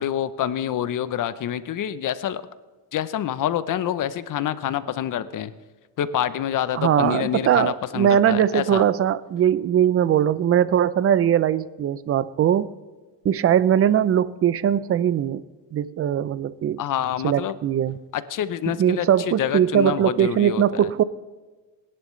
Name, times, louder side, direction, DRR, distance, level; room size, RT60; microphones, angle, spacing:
voice 1, 0.0-2.4 2.9-5.5 6.0-8.8 16.8-17.6 18.1-20.9, left 10 dB, 45° left, 14 dB, 0.7 m, -27 dB
voice 2, 6.7-12.8 13.2-15.4 15.7-16.8 17.2-18.0 18.8-21.0, right 10 dB, 35° right, 18 dB, 0.5 m, -20 dB
20.5 x 11.0 x 3.2 m, 1.3 s
cardioid pair, 115°, 44 cm